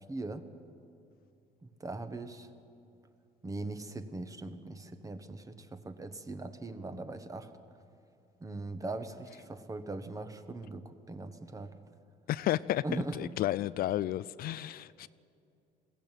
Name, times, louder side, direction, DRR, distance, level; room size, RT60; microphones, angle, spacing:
voice 1, 0.1-0.5 1.6-2.5 3.4-7.5 8.4-11.7 12.8-13.2, right 2 dB, 20° right, 9 dB, 1.3 m, -40 dB
voice 2, 12.3-12.8 13.1-15.1, left 14 dB, 60° left, 17 dB, 0.4 m, -32 dB
20.5 x 15.5 x 9.0 m, 2.6 s
cardioid pair, 110°, 17 cm